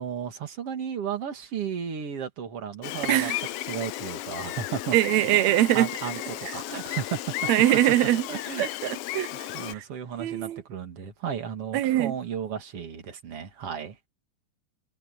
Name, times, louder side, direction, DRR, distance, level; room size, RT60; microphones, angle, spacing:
voice 1, 0.0-3.3 3.7-4.9 5.7-7.2 8.3-8.6 9.3-14.0, right 7 dB, 50° right, 2.9 m, -34 dB
Gull seagull, 2.8-9.7, left 15 dB, 90° left, 1.3 m, -34 dB
voice 2, 4.9-5.9 6.5-6.6 7.5-8.3 8.6-9.8 10.2-10.6 11.7-12.1, right 14 dB, 75° right, 1.9 m, -23 dB
omnidirectional pair, 3.5 m